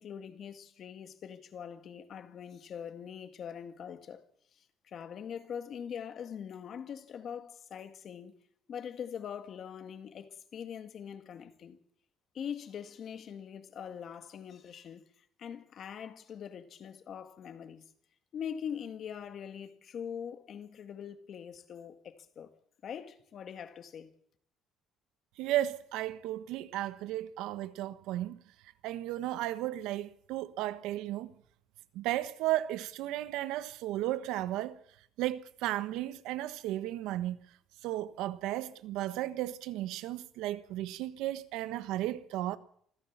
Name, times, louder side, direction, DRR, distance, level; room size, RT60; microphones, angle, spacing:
voice 1, 0.0-4.2 4.5-8.3 8.7-11.8 12.3-17.9 18.3-22.5 22.8-24.1, left 8 dB, 40° left, 1.9 m, -43 dB
voice 2, 25.4-28.4 28.8-31.3 31.9-34.8 35.2-37.4 37.8-42.6, right 14 dB, 80° right, 1.2 m, -34 dB
26.0 x 14.5 x 7.4 m
cardioid pair, 155°, 0 cm